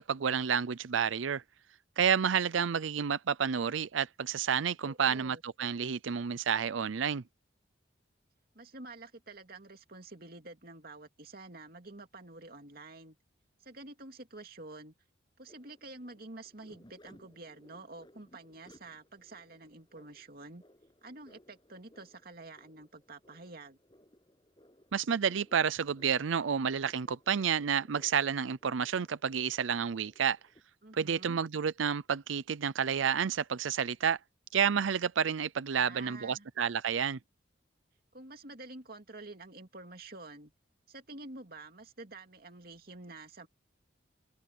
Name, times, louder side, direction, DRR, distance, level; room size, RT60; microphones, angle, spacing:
voice 1, 0.0-1.4 2.0-7.2 24.9-30.4 30.9-34.2 34.5-37.2, right 7 dB, 85° right, 0.5 m, -30 dB
voice 2, 4.9-5.4 8.5-13.2 13.6-14.9 15.4-20.6 21.0-23.8 30.8-31.4 35.7-36.5 38.1-40.5 40.9-43.5, right 2 dB, 50° right, 2.7 m, -49 dB
sound 1, 15.5-30.6, equal, 25° left, 8.0 m, -63 dB
head